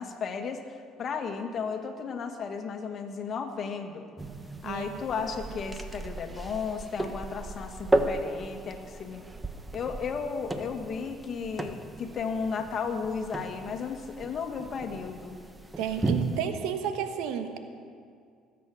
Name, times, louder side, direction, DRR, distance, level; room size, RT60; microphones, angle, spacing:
voice 1, 0.0-4.1 4.6-9.3 9.7-15.4, left 5 dB, 50° left, 5 dB, 1.8 m, -34 dB
sound 1, 4.2-16.4, right 2 dB, 15° right, 1.2 m, -34 dB
voice 2, 15.8-17.6, right 8 dB, 75° right, 7 dB, 1.3 m, -31 dB
19.5 x 8.6 x 6.4 m, 2.2 s
hypercardioid pair, 70°, 0 cm